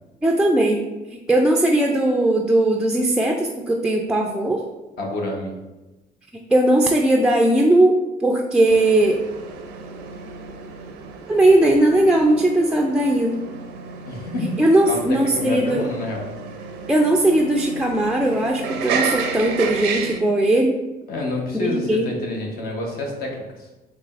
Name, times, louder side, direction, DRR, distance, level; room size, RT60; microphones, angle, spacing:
voice 1, 0.2-0.8 1.3-4.6 6.5-7.9 8.2-9.2 11.3-13.4 14.6-15.9 16.9-20.8 21.6-22.1, right 1 dB, 5° right, 0 dB, 0.3 m, -18 dB
voice 2, 5.0-5.5 14.0-14.6 14.8-16.3 21.1-23.7, left 2 dB, 65° left, 0 dB, 1.0 m, -28 dB
sound 1, 8.7-20.2, right 5 dB, 90° right, 0.5 m, -32 dB
4.8 x 3.1 x 2.4 m, 1.1 s
cardioid pair, 110°, 17 cm